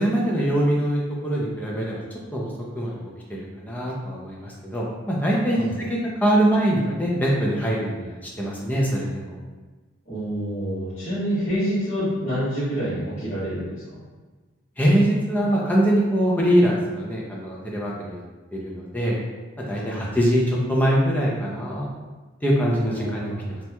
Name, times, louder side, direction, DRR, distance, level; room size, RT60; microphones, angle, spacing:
voice 1, 0.0-2.0 2.3-9.4 14.8-18.2 18.5-19.2 19.7-21.9 22.4-23.6, equal, 10° left, -4 dB, 0.5 m, -23 dB
voice 2, 10.1-13.7 19.7-20.1 23.0-23.5, equal, 35° left, -16 dB, 1.1 m, -27 dB
3.1 x 2.9 x 2.2 m, 1.3 s
head